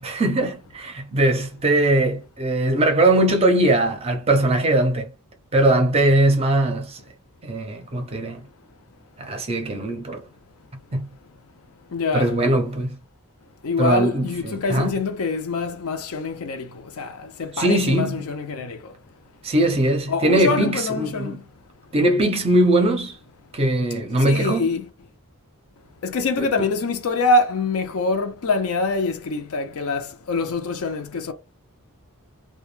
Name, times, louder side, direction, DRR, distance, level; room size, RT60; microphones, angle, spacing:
voice 1, 0.0-5.1 5.5-7.0 7.4-8.4 9.2-10.2 10.9-11.1 12.1-13.0 13.8-14.9 17.5-18.2 19.4-21.4 21.9-23.2 23.5-24.7 26.4-26.5, right 1 dB, 25° right, 0.5 m, -20 dB
voice 2, 11.9-12.4 13.6-16.7 17.0-18.8 20.1-21.4 24.2-24.9 26.0-31.3, left 3 dB, 70° left, 0.5 m, -25 dB
2.2 x 2.0 x 3.1 m
head